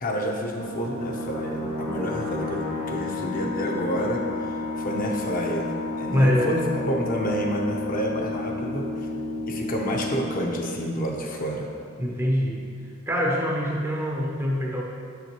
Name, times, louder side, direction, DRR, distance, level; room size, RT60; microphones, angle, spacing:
voice 1, 0.0-4.3 4.8-5.7 6.0-8.9 9.5-11.7, equal, 40° left, 1 dB, 0.6 m, -29 dB
sound 1, 0.6-11.9, left 2 dB, 75° left, 1.4 m, -32 dB
voice 2, 6.1-6.6 12.0-12.7 13.1-14.8, equal, 10° right, -2 dB, 0.6 m, -24 dB
7.2 x 5.9 x 2.9 m, 2.3 s
head